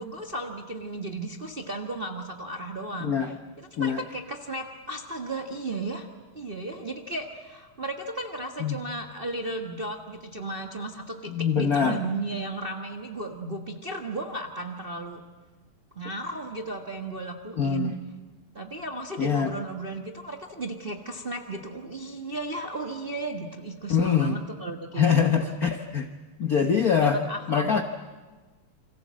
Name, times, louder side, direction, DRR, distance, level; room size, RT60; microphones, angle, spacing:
voice 1, 0.0-3.1 3.6-6.1 6.3-15.2 15.9-17.9 18.5-25.2 25.4-25.5 27.0-27.8, right 2 dB, 35° right, 3 dB, 0.9 m, -34 dB
voice 2, 3.0-3.3 3.8-4.0 8.6-8.8 11.3-12.0 17.5-17.9 19.2-19.5 23.9-24.4 25.0-26.1 26.4-27.8, left 7 dB, 75° left, 6 dB, 0.8 m, -24 dB
29.0 x 26.0 x 7.5 m, 1.3 s
omnidirectional pair, 3.4 m